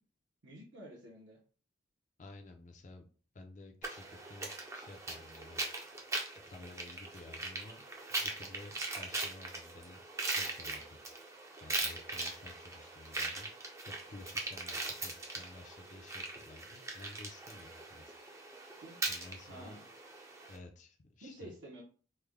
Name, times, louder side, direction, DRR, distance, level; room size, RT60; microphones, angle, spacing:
voice 1, 0.4-1.4 18.8-19.0 19.5-19.8 21.2-21.8, right 1 dB, 65° right, -2 dB, 0.7 m, -50 dB
voice 2, 2.2-3.1 3.3-5.6 6.5-11.0 11.6-18.2 19.1-19.8 20.5-21.5, left 2 dB, 40° left, 4 dB, 0.4 m, -53 dB
sound 1, 3.8-20.6, right 2 dB, 15° right, 0.4 m, -40 dB
3.3 x 2.1 x 3.4 m, 0.40 s
head